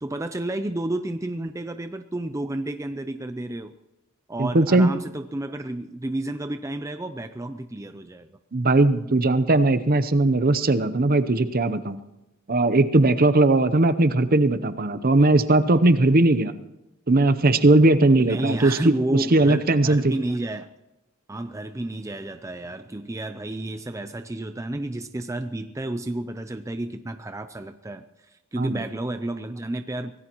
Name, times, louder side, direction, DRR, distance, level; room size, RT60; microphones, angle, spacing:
voice 1, 0.0-3.7 4.3-8.4 18.2-20.7 21.3-30.1, right 1 dB, 15° right, 9 dB, 0.5 m, -31 dB
voice 2, 4.4-4.9 8.5-12.0 12.5-16.5 17.1-20.1 28.6-28.8, right 2 dB, 45° right, 12 dB, 0.8 m, -19 dB
24.5 x 17.5 x 3.0 m, 0.97 s
head